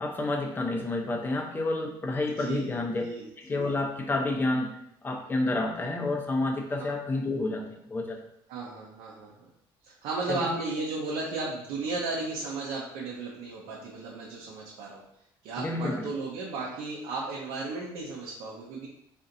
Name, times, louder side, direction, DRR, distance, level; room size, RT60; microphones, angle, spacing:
voice 1, 0.0-3.0 3.4-4.7 5.0-8.2 10.3-10.5 15.6-16.1, left 2 dB, 20° left, 3 dB, 0.7 m, -29 dB
voice 2, 2.3-3.6 6.8-6.9 8.5-9.5 9.8-15.0 15.4-18.9, right 3 dB, 80° right, -4 dB, 0.9 m, -35 dB
4.4 x 4.0 x 2.6 m, 0.77 s
cardioid pair, 135°, 10 cm